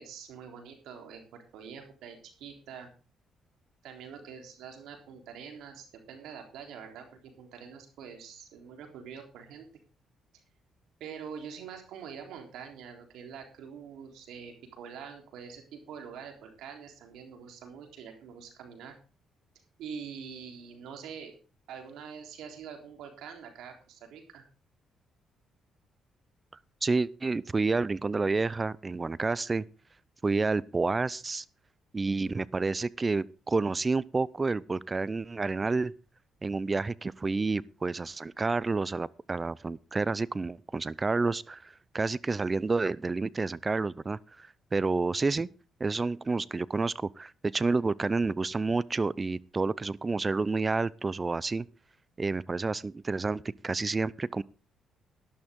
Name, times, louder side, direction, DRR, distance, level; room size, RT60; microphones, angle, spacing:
voice 1, 0.0-2.9 3.8-7.1 7.4-9.7 11.0-18.9 19.8-21.3 21.7-24.4, right 7 dB, 85° right, 3.6 m, -45 dB
voice 2, 26.8-29.6 30.2-31.4 31.9-35.9 36.4-45.5 45.8-51.7 52.2-54.4, right 3 dB, 25° right, 0.6 m, -29 dB
12.5 x 11.5 x 3.7 m
cardioid pair, 90°, 0 cm